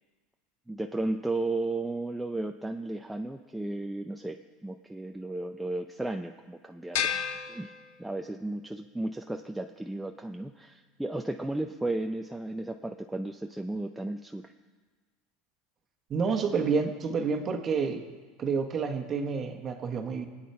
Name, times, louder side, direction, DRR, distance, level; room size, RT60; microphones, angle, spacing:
voice 1, 0.7-7.2 7.5-7.7 8.0-14.5, right 2 dB, 5° right, 4 dB, 0.4 m, -34 dB
sound 1, 6.9-8.4, left 8 dB, 80° left, 1.1 m, -33 dB
voice 2, 16.1-18.0 18.4-20.3, right 5 dB, 25° right, 5 dB, 1.2 m, -29 dB
23.0 x 8.7 x 4.3 m, 1.4 s
supercardioid pair, 155°, 0 cm